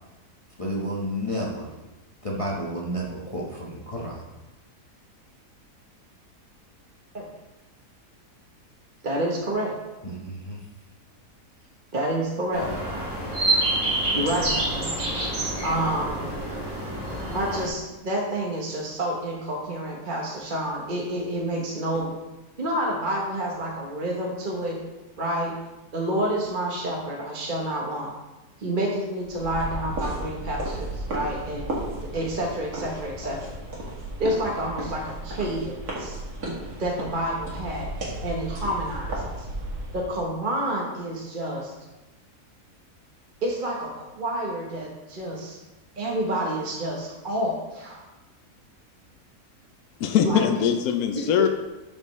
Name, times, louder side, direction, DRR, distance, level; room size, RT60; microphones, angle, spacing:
voice 1, 0.6-1.7 2.2-4.2 10.0-10.6, equal, 25° left, -4 dB, 1.1 m, -31 dB
voice 2, 9.0-9.7 11.9-12.7 14.1-14.9 15.6-16.2 17.1-22.1 22.6-24.8 25.2-25.5 25.9-28.1 28.6-33.5 34.2-36.2 36.8-39.5 39.9-41.7 43.4-45.6 46.0-48.0 50.2-50.4 51.1-51.2, right 1 dB, 35° right, -2 dB, 1.0 m, -29 dB
sound 1, 12.5-17.7, right 2 dB, 50° right, 2.5 m, -27 dB
sound 2, 29.2-40.1, right 1 dB, 70° right, 2.2 m, -34 dB
voice 3, 50.0-51.5, left 8 dB, 70° left, 5 dB, 1.1 m, -22 dB
12.5 x 5.4 x 3.1 m, 1.1 s
omnidirectional pair, 1.7 m